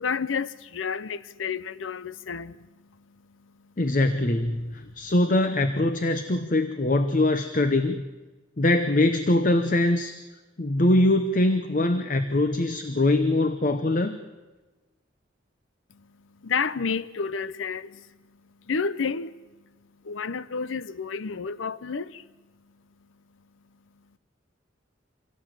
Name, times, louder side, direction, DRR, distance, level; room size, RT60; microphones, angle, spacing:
voice 1, 0.0-3.8 4.5-5.0 15.9-24.2, left 5 dB, 90° left, 0.7 m, -32 dB
voice 2, 3.8-8.0 8.6-10.2 10.6-14.2, left 2 dB, 40° left, 0.8 m, -23 dB
24.5 x 17.0 x 7.5 m
head